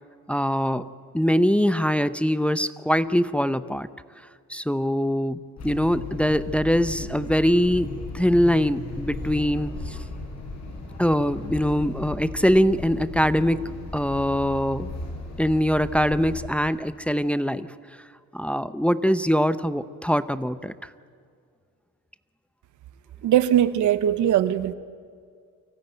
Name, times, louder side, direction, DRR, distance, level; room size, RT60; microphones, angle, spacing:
voice 1, 0.3-0.8 1.1-3.9 4.5-10.0 11.0-14.9 15.4-17.7 18.3-20.7, equal, 5° left, 13 dB, 0.7 m, -23 dB
sound 1, 5.6-16.4, left 2 dB, 60° left, 7.9 m, -36 dB
voice 2, 23.2-24.7, right 11 dB, 80° right, 13 dB, 1.1 m, -20 dB
24.5 x 16.5 x 9.1 m, 2.2 s
cardioid pair, 90°, 30 cm